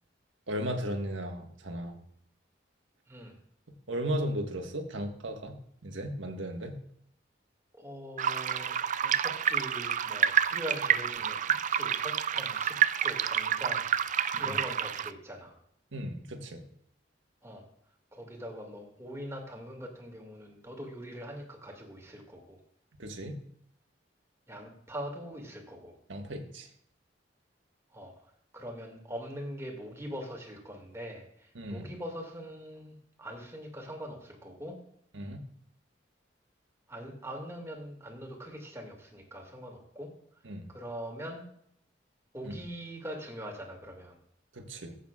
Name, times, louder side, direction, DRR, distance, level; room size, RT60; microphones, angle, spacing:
voice 1, 0.5-1.9 3.9-5.6 5.8-6.8 14.3-14.5 15.9-16.6 23.0-23.4 26.1-26.7 31.5-31.9 35.1-35.4 40.4-40.7 42.4-42.5 44.5-45.0, equal, 85° right, 4 dB, 1.5 m, -35 dB
voice 2, 7.7-13.9 14.4-15.5 17.4-17.6 18.1-22.6 24.5-25.9 27.9-28.1 28.5-34.8 36.9-40.1 40.7-41.4 42.3-44.2, equal, 15° right, 1 dB, 2.1 m, -42 dB
sound 1, 8.2-15.1, right 9 dB, 40° right, 0.4 m, -29 dB
15.0 x 8.2 x 2.4 m, 0.69 s
head